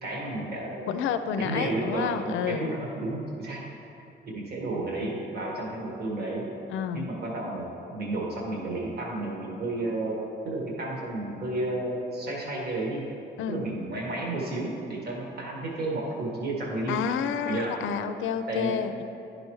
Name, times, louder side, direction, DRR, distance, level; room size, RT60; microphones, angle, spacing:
voice 1, 0.0-1.0 1.3-3.6 4.3-6.5 6.9-13.0 13.5-17.0 17.4-17.8 18.5-18.8, right 2 dB, 55° right, -2 dB, 1.5 m, -32 dB
voice 2, 0.9-2.7 6.7-7.1 13.4-13.7 16.9-19.0, left 7 dB, 80° left, 9 dB, 0.4 m, -30 dB
10.5 x 5.0 x 3.1 m, 2.8 s
cardioid pair, 90°, 20 cm